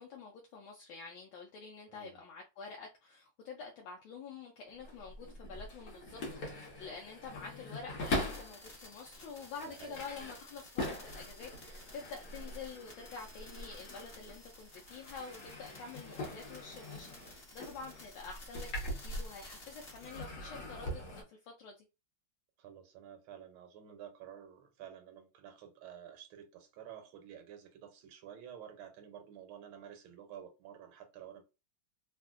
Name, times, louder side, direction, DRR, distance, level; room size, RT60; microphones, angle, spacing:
voice 1, 0.0-18.7 19.0-21.8, left 5 dB, 75° left, 1.3 m, -48 dB
voice 2, 1.9-2.2 9.8-10.0 22.6-31.4, right 9 dB, 85° right, 1.6 m, -51 dB
sound 1, 4.7-8.6 9.2-14.4 14.7-19.6 19.9-21.2, left 1 dB, 55° left, 1.4 m, -42 dB
sound 2, 8.0-20.2, left 2 dB, 35° left, 1.3 m, -54 dB
3.6 x 2.4 x 2.4 m
omnidirectional pair, 2.3 m